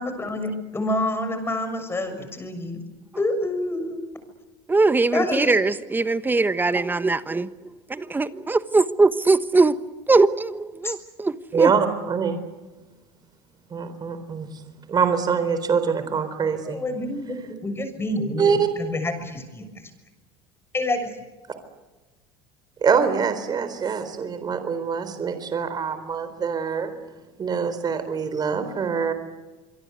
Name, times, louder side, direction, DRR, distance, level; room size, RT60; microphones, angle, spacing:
voice 1, 0.0-2.8 3.2-4.0 5.1-5.6 10.8-10.9 16.6-19.7 20.7-21.1, left 1 dB, 20° left, 9 dB, 6.6 m, -27 dB
voice 2, 4.7-7.5 7.9-9.8 10.1-11.7, right 3 dB, 15° right, 13 dB, 1.2 m, -21 dB
voice 3, 11.5-12.4 13.7-14.5 14.9-16.8 18.4-18.7 22.8-26.9 27.4-29.1, right 6 dB, 35° right, 10 dB, 4.0 m, -24 dB
27.0 x 22.5 x 8.2 m, 1.2 s
supercardioid pair, 90°, 12 cm